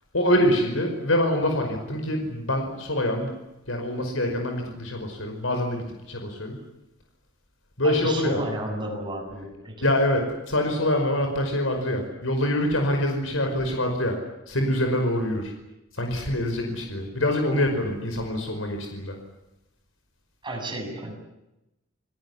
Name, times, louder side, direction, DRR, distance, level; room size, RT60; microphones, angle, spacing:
voice 1, 0.1-3.3 3.7-6.6 7.8-8.4 9.8-10.2 10.5-14.2 14.5-15.5 16.0-19.2, left 1 dB, 90° left, 4 dB, 5.3 m, -25 dB
voice 2, 7.8-9.9 20.4-21.1, right 1 dB, 25° right, 2 dB, 7.9 m, -32 dB
29.5 x 19.0 x 9.8 m, 0.93 s
head